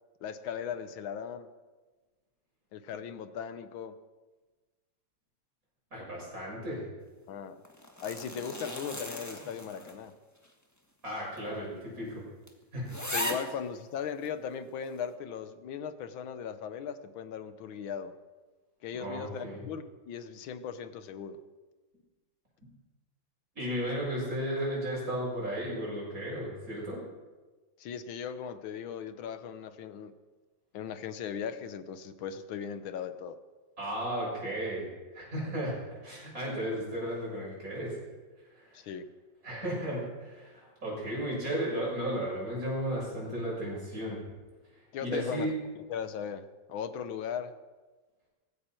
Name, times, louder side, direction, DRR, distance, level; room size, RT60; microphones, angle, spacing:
voice 1, 0.2-1.5 2.7-4.0 7.3-7.6 8.0-10.1 13.1-18.1 18.8-21.4 27.8-30.1 30.7-33.4 38.7-39.1 44.9-45.5 45.9-47.5, left 7 dB, 90° left, 11 dB, 1.7 m, -38 dB
voice 2, 5.9-6.9 11.0-12.2 12.7-12.9 18.9-19.6 23.6-27.0 33.8-34.9 35.1-35.8 36.0-38.0 38.5-38.8 39.4-44.2 45.0-45.5, equal, 45° right, -4 dB, 7.1 m, -34 dB
sound 1, 7.6-10.1 10.4-10.5 11.4-11.5 11.9-12.0 12.5-12.6 12.9-13.5 14.2-14.3, left 1 dB, 10° left, 1.4 m, -37 dB
19.0 x 15.5 x 4.5 m, 1.3 s
omnidirectional pair, 2.1 m